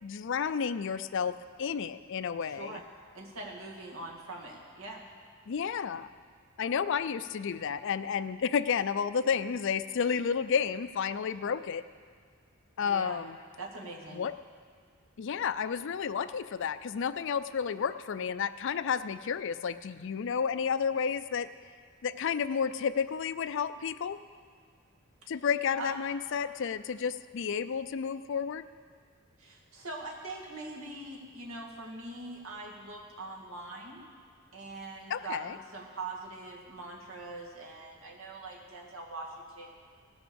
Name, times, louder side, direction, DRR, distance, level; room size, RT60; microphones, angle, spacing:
voice 1, 0.0-2.8 5.5-6.1 6.6-11.8 12.8-13.4 14.1-14.3 15.2-21.5 22.0-24.2 25.3-28.6 35.1-35.6, left 6 dB, 65° left, 13 dB, 0.4 m, -31 dB
voice 2, 2.4-2.8 3.1-5.0 12.8-13.2 13.6-14.2 25.8-26.0 29.4-34.0 34.5-39.7, right 2 dB, 85° right, -1 dB, 2.2 m, -42 dB
18.0 x 6.2 x 7.0 m, 2.1 s
head